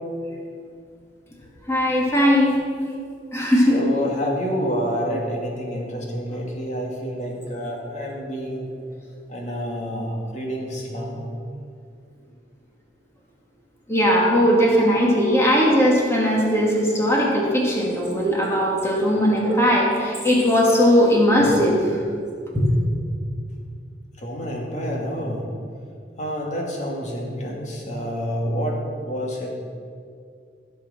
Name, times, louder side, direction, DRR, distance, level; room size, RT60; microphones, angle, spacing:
voice 1, 1.7-2.6 3.3-3.8 13.9-22.0 22.5-22.6, equal, 15° left, -4 dB, 2.7 m, -18 dB
voice 2, 3.7-8.7 9.3-11.3 24.2-25.5 26.2-29.5, equal, 45° left, -1 dB, 2.5 m, -28 dB
15.0 x 7.0 x 6.5 m, 2.3 s
head